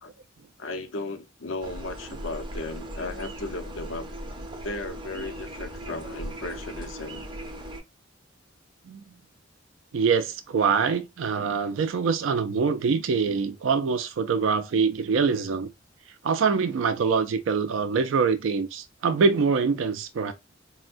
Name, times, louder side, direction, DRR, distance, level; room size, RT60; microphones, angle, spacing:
voice 1, 0.6-4.1 4.6-7.3, left 2 dB, 90° left, 0.6 m, -35 dB
sound 1, 1.6-7.8, right 1 dB, 25° right, 0.5 m, -38 dB
voice 2, 9.9-15.7 16.2-20.3, right 5 dB, 75° right, 0.4 m, -24 dB
4.3 x 2.1 x 2.4 m
head